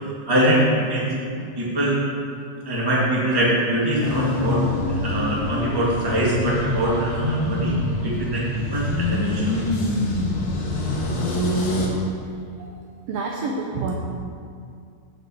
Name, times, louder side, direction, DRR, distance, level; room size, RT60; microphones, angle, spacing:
voice 1, 0.3-1.1 1.6-1.9 2.6-7.7 8.0-9.4, right 1 dB, 15° right, -6 dB, 1.0 m, -23 dB
sound 1, 4.0-11.9, left 1 dB, 50° left, 1.8 m, -25 dB
voice 2, 13.1-13.9, right 3 dB, 85° right, 0 dB, 1.3 m, -27 dB
7.8 x 6.0 x 7.1 m, 2.3 s
omnidirectional pair, 3.7 m